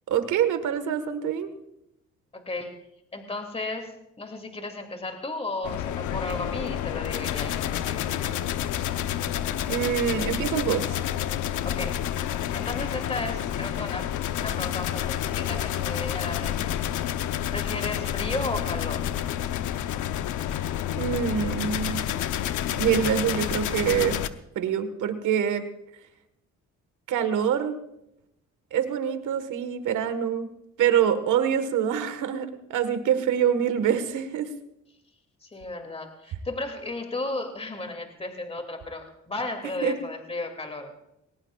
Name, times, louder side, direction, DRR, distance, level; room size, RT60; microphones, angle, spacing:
voice 1, 0.1-1.5 9.7-11.0 21.0-22.0 22.7-24.2 24.5-25.7 27.1-27.7 28.7-30.5 30.8-34.5 39.8-39.9, right 8 dB, 80° right, 9 dB, 1.6 m, -25 dB
voice 2, 2.3-2.8 3.1-8.4 11.6-12.0 12.5-16.7 17.5-19.0 35.4-40.9, left 2 dB, 20° left, 5 dB, 2.6 m, -34 dB
sound 1, 5.6-24.3, left 11 dB, 80° left, 0.8 m, -29 dB
21.5 x 18.5 x 2.4 m, 0.82 s
cardioid pair, 90°, 30 cm